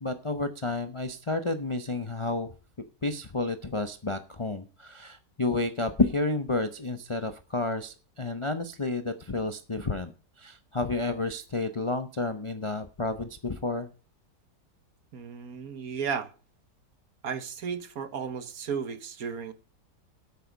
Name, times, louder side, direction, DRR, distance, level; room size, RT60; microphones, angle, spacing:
voice 1, 0.0-2.5 3.0-10.1 10.4-13.9, left 3 dB, 35° left, 0.5 m, -30 dB
voice 2, 15.1-16.3 17.2-19.5, right 6 dB, 60° right, 1.5 m, -34 dB
10.5 x 9.1 x 5.2 m
omnidirectional pair, 1.9 m